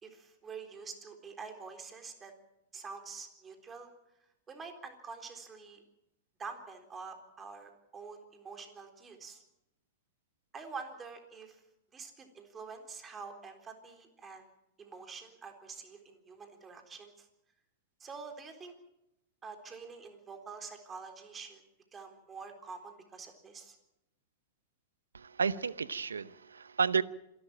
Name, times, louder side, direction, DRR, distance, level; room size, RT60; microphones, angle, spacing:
voice 1, 0.0-2.3 2.7-3.9 4.5-5.8 6.4-9.4 10.5-11.6 11.9-14.5 14.8-17.3 18.0-18.7 19.4-21.6 21.9-23.8, right 5 dB, 20° right, 5 dB, 3.9 m, -46 dB
voice 2, 25.1-27.0, right 6 dB, 85° right, 18 dB, 0.7 m, -31 dB
27.0 x 12.5 x 8.9 m, 0.87 s
hypercardioid pair, 100°, 0 cm